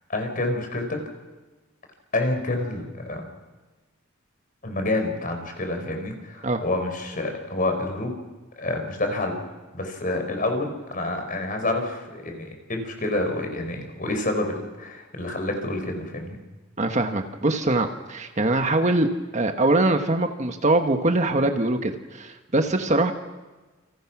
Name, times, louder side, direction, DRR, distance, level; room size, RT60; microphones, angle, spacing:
voice 1, 0.1-1.0 2.1-3.2 4.6-8.1 8.6-9.4 9.7-16.4, left 2 dB, 40° left, 5 dB, 5.0 m, -28 dB
voice 2, 16.8-23.1, right 2 dB, 35° right, 6 dB, 1.4 m, -23 dB
28.5 x 27.0 x 6.2 m, 1.2 s
head